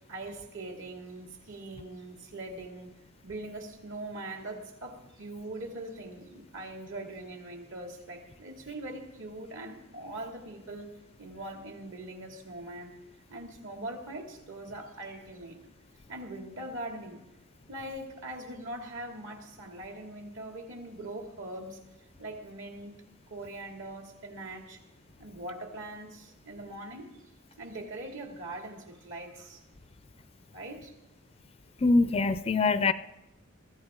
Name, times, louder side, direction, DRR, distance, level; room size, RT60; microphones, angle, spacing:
voice 1, 0.1-2.9 3.2-10.9 11.2-12.9 13.3-15.6 16.1-17.2 17.7-21.8 22.2-22.9 23.3-24.8 25.2-27.1 27.6-29.6 30.5-30.9, right 1 dB, 65° right, 2 dB, 2.6 m, -41 dB
voice 2, 31.8-32.9, left 3 dB, 30° left, 13 dB, 0.4 m, -23 dB
22.0 x 14.5 x 3.8 m, 0.95 s
head